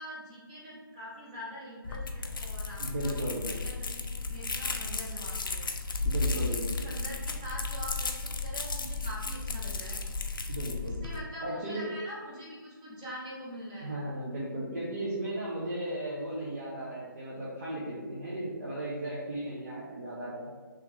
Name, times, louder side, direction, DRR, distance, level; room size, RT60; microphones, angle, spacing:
voice 1, 0.0-5.7 6.3-10.0 10.8-14.0, equal, 15° right, -6 dB, 0.7 m, -44 dB
sound 1, 1.8-11.2, left 3 dB, 65° left, 0.5 m, -34 dB
voice 2, 2.8-3.5 6.0-6.9 10.5-11.0 11.4-11.9 13.8-20.6, right 1 dB, 45° right, -8 dB, 0.8 m, -36 dB
3.1 x 3.1 x 3.5 m, 1.4 s
hypercardioid pair, 170°, 12 cm